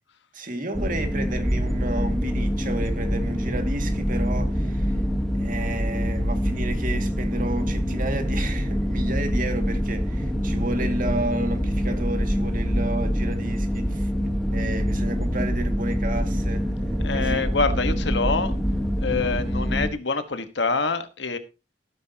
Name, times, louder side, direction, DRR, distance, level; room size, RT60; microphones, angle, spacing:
voice 1, 0.3-5.0 5.3-17.5, right 1 dB, 50° right, 2.0 m, -32 dB
sound 1, 0.7-19.9, equal, ahead, 1.3 m, -25 dB
voice 2, 17.0-18.6 19.0-21.4, left 3 dB, 70° left, 1.3 m, -26 dB
17.0 x 9.4 x 2.8 m
head